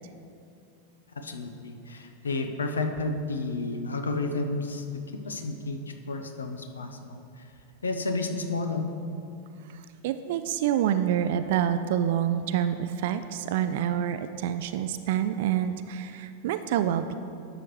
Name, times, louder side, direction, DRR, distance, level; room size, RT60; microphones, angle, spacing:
voice 1, 1.2-4.8 5.2-5.8 6.1-7.2 7.8-8.9, left 3 dB, 70° left, 6 dB, 0.7 m, -31 dB
voice 2, 9.7-17.2, right 10 dB, 50° right, 10 dB, 0.3 m, -27 dB
11.0 x 6.9 x 3.2 m, 2.5 s
figure-of-eight pair, 90°, 0 cm